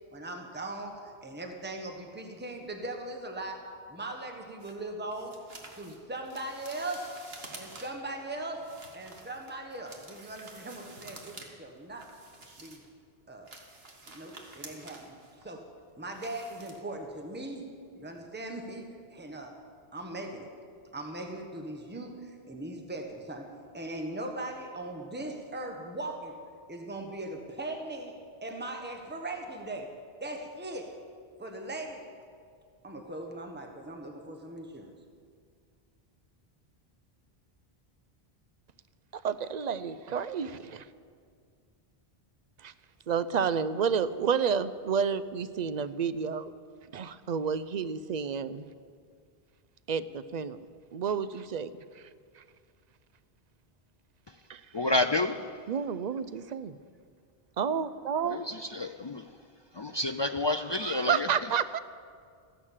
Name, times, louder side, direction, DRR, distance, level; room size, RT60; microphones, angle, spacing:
voice 1, 0.1-5.3 5.8-7.1 7.5-12.1 12.6-12.8 13.3-13.5 14.1-15.1 15.4-15.7 16.0-19.5 19.9-20.5 20.9-23.5 23.7-26.4 26.7-29.9 30.2-31.0 31.4-32.1 32.8-34.9, right 2 dB, 10° right, 3 dB, 1.3 m, -39 dB
sound 1, 4.6-8.1 8.6-11.5 11.8-12.9 13.3-17.2 17.5-17.8 18.1-18.2, right 2 dB, 70° right, 1.9 m, -50 dB
voice 2, 39.2-40.8 42.6-42.7 43.1-46.5 46.9-48.7 49.9-50.6 50.9-51.7 54.5-54.6 55.7-56.8 57.6-58.4 60.8-61.8, right 6 dB, 50° right, 14 dB, 0.6 m, -30 dB
voice 3, 54.7-55.5 58.2-59.3 59.8-61.3, left 2 dB, 45° left, 9 dB, 0.3 m, -29 dB
15.0 x 11.0 x 7.4 m, 2.1 s
omnidirectional pair, 1.0 m